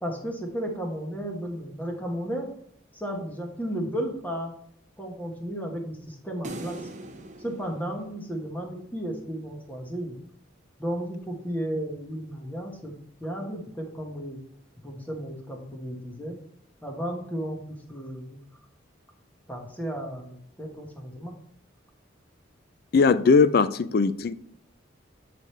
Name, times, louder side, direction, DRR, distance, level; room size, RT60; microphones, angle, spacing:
voice 1, 0.0-2.5 2.9-4.5 5.0-6.9 7.4-10.2 10.8-12.9 13.2-14.4 14.8-16.4 16.8-18.4 19.5-21.3, equal, 10° left, 1 dB, 1.1 m, -34 dB
sound 1, 6.4-8.8, right 1 dB, 35° right, 0.6 m, -41 dB
voice 2, 22.9-24.3, left 4 dB, 45° left, 14 dB, 0.3 m, -19 dB
8.5 x 3.3 x 4.3 m, 0.71 s
head